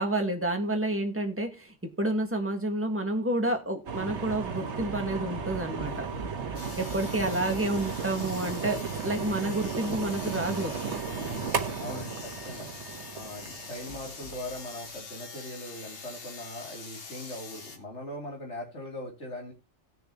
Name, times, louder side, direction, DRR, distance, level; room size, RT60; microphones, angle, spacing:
voice 1, 0.0-6.1 6.8-11.0, right 1 dB, 10° right, 4 dB, 1.6 m, -30 dB
sound 1, 3.9-15.0, right 5 dB, 80° right, 1.5 m, -35 dB
sound 2, 6.5-17.8, left 4 dB, 55° left, 1.5 m, -44 dB
voice 2, 11.8-12.7 13.1-19.5, left 1 dB, 85° left, 0 dB, 3.6 m, -40 dB
18.0 x 6.8 x 3.0 m, 0.26 s
omnidirectional pair, 1.2 m